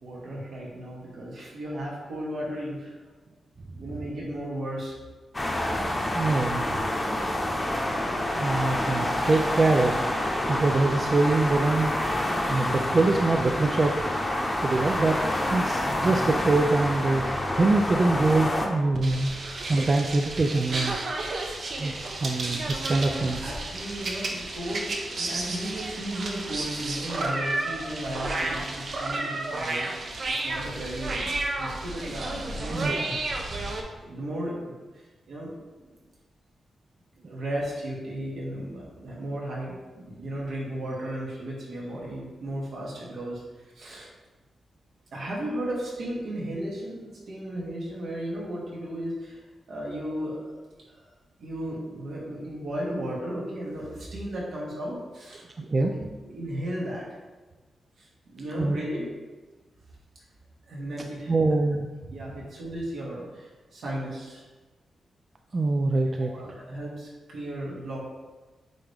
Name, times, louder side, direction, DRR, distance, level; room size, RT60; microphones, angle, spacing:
voice 1, 0.0-3.0 3.7-5.0 8.9-9.3 19.3-19.5 22.9-29.9 30.4-31.3 31.6-33.1 34.0-35.9 37.2-44.1 45.1-50.5 50.8-51.1 51.4-55.4 55.8-57.1 58.0-59.1 60.7-61.6 62.1-64.5 66.3-68.0, right 1 dB, 75° right, -5 dB, 2.1 m, -35 dB
sound 1, 5.3-18.7, left 1 dB, 20° left, 0.8 m, -28 dB
voice 2, 6.1-6.9 8.4-10.0 10.5-11.9 12.5-14.3 14.6-15.2 15.5-17.2 17.6-21.4 21.8-23.4 32.7-33.2 55.6-55.9 58.6-58.8 61.3-61.9 65.5-66.3, right 3 dB, 35° right, 3 dB, 0.4 m, -24 dB
sound 2, 18.9-33.8, right 2 dB, 50° right, 0.8 m, -32 dB
9.0 x 3.5 x 3.5 m, 1.3 s
wide cardioid pair, 130°, 0 cm